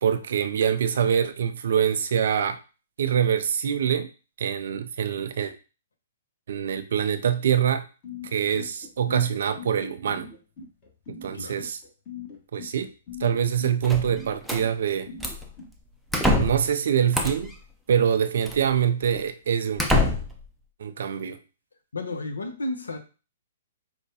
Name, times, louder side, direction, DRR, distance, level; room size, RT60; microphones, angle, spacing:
voice 1, 0.0-2.6 3.0-4.1 4.4-5.5 6.5-7.9 8.3-10.3 11.1-11.8 12.5-12.9 13.2-15.1 16.4-17.5 17.9-19.8 20.8-21.4, right 8 dB, 60° right, 8 dB, 0.4 m, -24 dB
sound 1, 8.0-15.7, left 6 dB, 35° left, 1.2 m, -41 dB
voice 2, 11.3-11.7 21.9-23.0, left 2 dB, 80° left, 6 dB, 0.7 m, -32 dB
sound 2, 13.8-14.6 15.2-15.5 16.1-16.7 17.1-17.6 18.5-18.6 19.2-19.3 19.8-20.4, left 1 dB, ahead, 0.5 m, -25 dB
4.7 x 2.2 x 2.8 m, 0.33 s
figure-of-eight pair, 120°, 0 cm